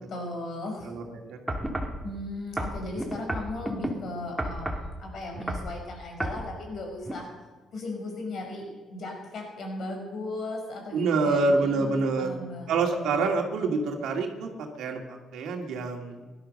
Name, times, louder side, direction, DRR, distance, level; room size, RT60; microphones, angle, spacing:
voice 1, 0.1-0.9 2.0-7.3 7.7-12.7, left 2 dB, 60° left, 1 dB, 5.5 m, -37 dB
voice 2, 0.8-1.4 10.9-12.3 12.7-16.2, right 3 dB, 80° right, 2 dB, 2.2 m, -27 dB
sound 1, 1.5-2.0 2.6-3.9 4.4-4.9 5.3-5.7 6.2-6.4 7.0-7.1, right 1 dB, 10° right, 2.3 m, -31 dB
17.0 x 11.5 x 6.5 m, 1.3 s
cardioid pair, 90°, 0 cm